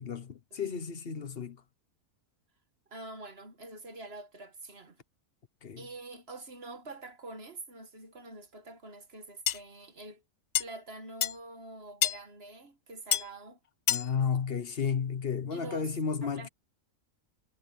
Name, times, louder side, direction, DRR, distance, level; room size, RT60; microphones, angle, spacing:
voice 1, 0.0-1.6 5.6-5.8 13.9-16.5, left 6 dB, 45° left, 1.2 m, -32 dB
voice 2, 2.9-5.0 5.8-10.2 10.6-13.6 15.5-15.9 16.2-16.5, right 2 dB, 45° right, 1.8 m, -46 dB
sound 1, 9.5-9.6 10.6-10.7 11.2-11.4 12.0-12.2 13.1-13.3 13.9-14.1, left 10 dB, 90° left, 0.4 m, -27 dB
omnidirectional pair, 1.5 m